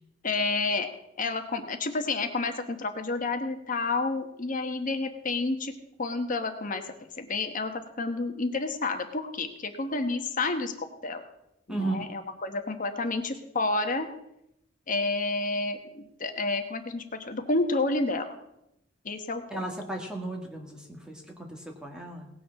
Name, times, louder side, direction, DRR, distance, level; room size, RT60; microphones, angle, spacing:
voice 1, 0.2-0.9 1.2-5.7 6.0-6.8 7.2-11.2 11.7-14.1 14.9-18.3 19.0-19.6, left 3 dB, 45° left, 7 dB, 1.1 m, -30 dB
voice 2, 19.5-22.3, right 2 dB, 5° right, 0 dB, 1.9 m, -35 dB
18.0 x 6.2 x 5.9 m, 0.83 s
head